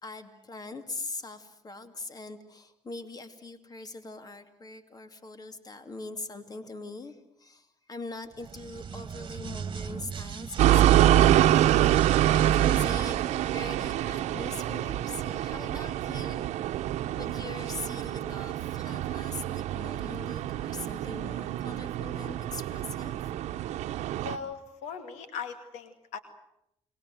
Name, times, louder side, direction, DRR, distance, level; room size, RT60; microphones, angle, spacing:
voice 1, 0.0-13.2 13.5-23.2, left 3 dB, 35° left, 9 dB, 2.7 m, -42 dB
sound 1, 8.3-14.0, right 6 dB, 45° right, 1.8 m, -38 dB
sound 2, 10.6-24.4, right 13 dB, 80° right, 1.0 m, -26 dB
voice 2, 24.2-26.2, left 6 dB, 90° left, 9 dB, 2.4 m, -39 dB
29.5 x 21.0 x 7.8 m, 0.79 s
cardioid pair, 80°, 11 cm